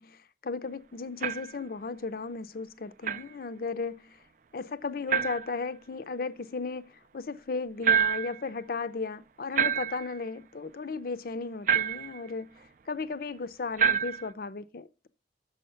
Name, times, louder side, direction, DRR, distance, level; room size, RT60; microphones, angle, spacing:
voice 1, 0.0-4.2 4.5-12.6 12.9-15.1, left 4 dB, 50° left, 0.5 m, -35 dB
sound 1, 1.2-1.6 3.0-3.3 5.1-5.5 7.8-8.4 9.6-10.2 11.7-12.2 13.8-14.3, right 7 dB, 45° right, 0.4 m, -27 dB
6.2 x 5.6 x 6.3 m
head